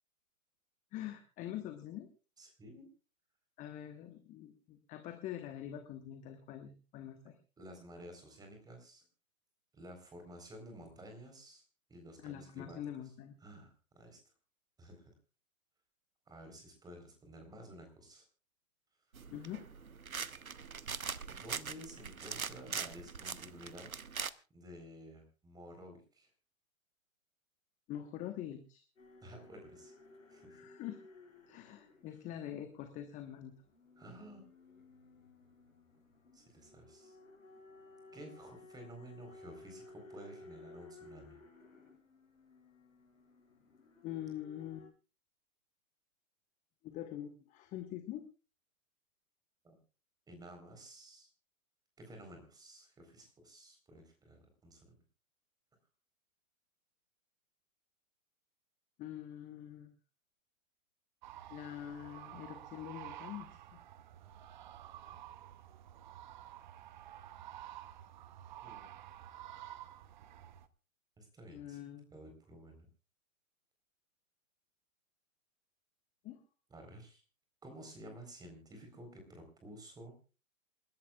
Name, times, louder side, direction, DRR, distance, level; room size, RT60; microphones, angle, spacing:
voice 1, 0.9-2.1 3.6-7.4 12.2-13.4 19.3-19.7 27.9-28.8 30.5-31.0 31.5-33.5 44.0-44.9 46.8-48.2 59.0-59.9 61.5-63.8 71.5-72.1 76.2-76.4, left 11 dB, 20° left, 7 dB, 1.1 m, -44 dB
voice 2, 2.4-2.9 7.6-9.0 9.7-11.6 11.9-12.8 13.4-14.2 14.8-15.1 16.3-18.2 21.3-23.9 24.5-26.3 29.2-29.9 30.3-30.6 34.0-34.4 36.3-37.2 38.1-41.4 49.6-49.8 50.3-51.3 52.0-54.9 68.6-68.9 71.2-71.8 72.1-72.9 76.7-77.2 77.6-80.2, right 1 dB, 10° right, 5 dB, 4.0 m, -52 dB
sound 1, 19.1-24.3, right 6 dB, 85° right, 0.9 m, -42 dB
sound 2, 29.0-44.9, left 2 dB, 65° left, 6.7 m, -57 dB
sound 3, 61.2-70.7, right 12 dB, 35° right, 0.8 m, -51 dB
28.5 x 11.5 x 2.4 m, 0.34 s
figure-of-eight pair, 120°, 41 cm